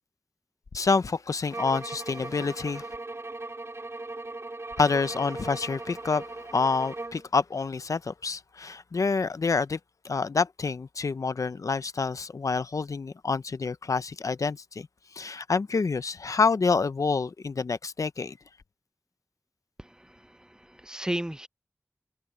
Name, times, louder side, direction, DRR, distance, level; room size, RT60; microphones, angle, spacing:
voice 1, 0.7-2.9 4.8-9.8 10.0-14.9 15.1-18.4, left 4 dB, 80° left, 0.7 m, -27 dB
sound 1, 1.5-7.3, right 2 dB, 50° right, 3.7 m, -39 dB
voice 2, 19.8-21.5, right 1 dB, 15° right, 0.7 m, -35 dB
cardioid pair, 40°, 6 cm